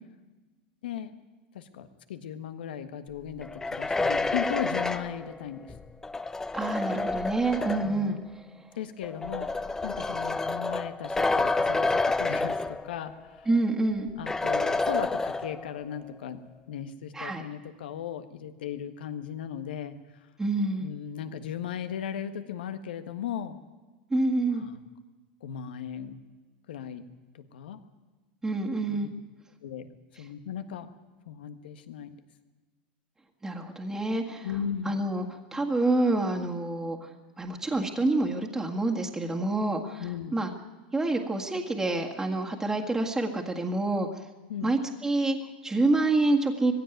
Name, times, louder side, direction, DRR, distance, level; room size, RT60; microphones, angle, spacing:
voice 1, 0.8-1.2 1.5-5.7 7.8-8.2 8.7-13.5 14.1-20.0 20.8-23.6 24.5-24.7 25.4-26.2 26.7-27.0 27.3-27.8 28.9-29.1 29.6-29.9 30.2-30.9 31.2-32.2 34.4-35.0 40.0-40.4 44.5-44.7, left 9 dB, 90° left, 10 dB, 1.6 m, -37 dB
sound 1, 3.4-8.1 9.0-13.2 13.5-13.6 14.3-15.8, left 3 dB, 10° left, 0.7 m, -29 dB
voice 2, 6.5-8.2 13.5-14.1 17.1-17.4 20.4-20.9 24.1-24.7 28.4-29.1 33.4-34.5 34.9-35.3 35.5-37.1 37.4-40.0 40.3-40.5 40.9-44.1 44.6-46.7, right 2 dB, 10° right, 1 dB, 1.8 m, -27 dB
18.5 x 16.0 x 9.2 m, 1.2 s
supercardioid pair, 130°, 5 cm